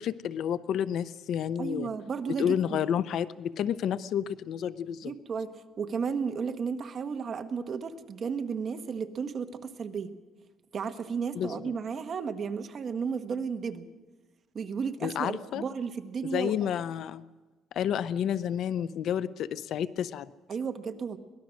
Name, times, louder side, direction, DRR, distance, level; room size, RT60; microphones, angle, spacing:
voice 1, 0.0-1.9 2.4-5.1 11.4-11.7 15.0-15.6 16.2-17.2 17.7-20.3, left 9 dB, 60° left, 16 dB, 0.6 m, -30 dB
voice 2, 1.6-2.8 5.0-5.5 5.8-10.1 10.7-13.9 14.5-16.5 20.5-21.2, right 6 dB, 35° right, 8 dB, 1.2 m, -33 dB
23.0 x 18.0 x 6.3 m, 1.2 s
cardioid pair, 145°, 0 cm